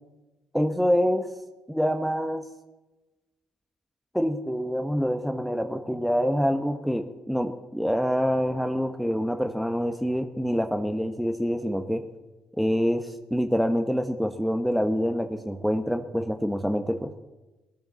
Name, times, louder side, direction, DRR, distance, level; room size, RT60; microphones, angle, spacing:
voice 1, 0.5-1.3 1.7-2.4 4.1-12.0 12.6-17.1, equal, ahead, 7 dB, 1.2 m, -26 dB
19.5 x 9.0 x 6.9 m, 1.1 s
hypercardioid pair, 50°, 3 cm